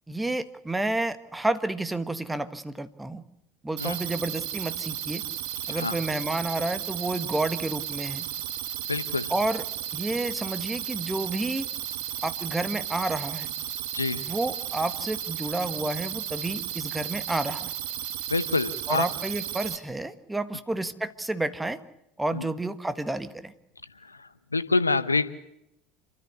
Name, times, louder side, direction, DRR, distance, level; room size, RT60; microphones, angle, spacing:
voice 1, 0.1-3.2 3.6-5.2 5.7-8.2 9.3-9.6 9.9-11.7 12.2-13.5 14.2-17.7 18.9-21.8 22.2-23.5, right 2 dB, 10° right, 12 dB, 1.5 m, -30 dB
sound 1, 3.8-19.8, right 11 dB, 65° right, 2.0 m, -34 dB
voice 2, 8.9-9.3 13.9-14.2 18.3-19.1 22.3-22.5 23.9-25.3, left 3 dB, 90° left, 14 dB, 0.9 m, -27 dB
28.5 x 13.5 x 8.1 m, 0.83 s
figure-of-eight pair, 70°, 0 cm